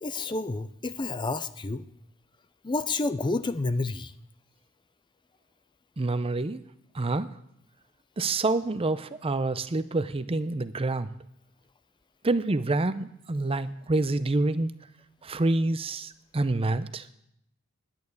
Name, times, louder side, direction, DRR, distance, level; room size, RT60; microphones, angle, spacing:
voice 1, 0.0-1.8 2.6-4.1, left 3 dB, 20° left, 13 dB, 0.5 m, -29 dB
voice 2, 6.0-6.6 6.9-7.3 8.2-11.1 12.2-14.7 15.2-17.1, right 2 dB, 25° right, 13 dB, 0.6 m, -27 dB
11.0 x 9.1 x 9.5 m, 0.76 s
head